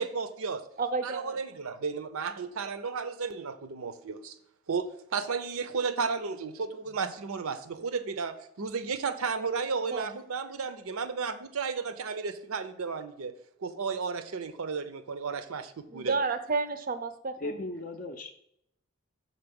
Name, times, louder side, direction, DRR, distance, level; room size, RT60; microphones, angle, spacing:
voice 1, 0.0-0.6 1.0-4.3 4.7-13.3 13.6-16.2, right 5 dB, 85° right, 12 dB, 0.6 m, -33 dB
voice 2, 0.8-1.2 9.9-10.1 15.9-17.4, right 4 dB, 40° right, 12 dB, 0.5 m, -30 dB
voice 3, 17.4-18.3, left 2 dB, 40° left, 4 dB, 0.4 m, -36 dB
5.9 x 4.1 x 5.2 m, 0.74 s
head